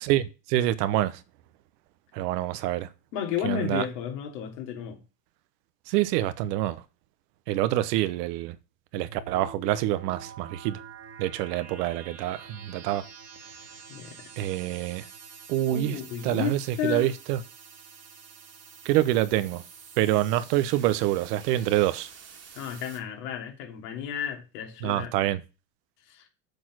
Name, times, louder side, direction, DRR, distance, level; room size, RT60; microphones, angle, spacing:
voice 1, 0.0-1.2 2.1-2.9 3.4-3.8 5.9-6.8 7.5-8.6 8.9-10.8 11.2-13.0 14.4-15.0 15.5-17.4 18.8-19.6 20.0-22.1 24.8-25.4, right 14 dB, 75° right, 1.1 m, -26 dB
voice 2, 3.1-5.0 13.9-14.3 15.7-17.1 22.5-25.1 26.1-26.3, left 9 dB, 75° left, 3.2 m, -33 dB
sound 1, 8.9-23.0, right 6 dB, 30° right, 2.0 m, -47 dB
7.0 x 6.3 x 6.2 m
supercardioid pair, 120°, 49 cm